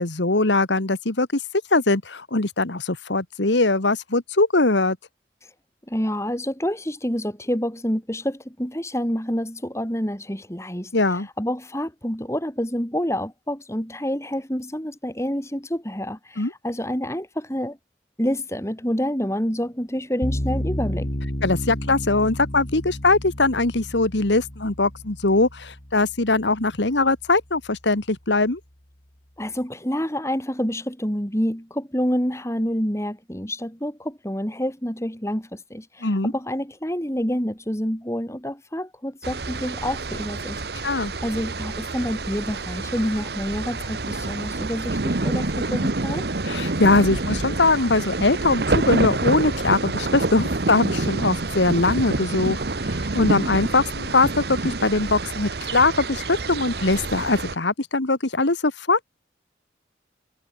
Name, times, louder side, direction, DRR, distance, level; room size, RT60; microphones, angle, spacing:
voice 1, 0.0-1.4 1.7-5.0 10.9-11.3 16.4-16.5 21.4-28.6 36.0-36.3 40.8-41.1 46.4-59.0, left 2 dB, 75° left, 1.8 m, -21 dB
voice 2, 5.9-17.8 18.2-21.1 29.4-40.6 41.2-46.3, equal, 15° left, 3.8 m, -28 dB
sound 1, 20.2-27.3, equal, 45° left, 3.0 m, -32 dB
sound 2, 39.2-57.6, right 2 dB, 55° right, 1.1 m, -27 dB
head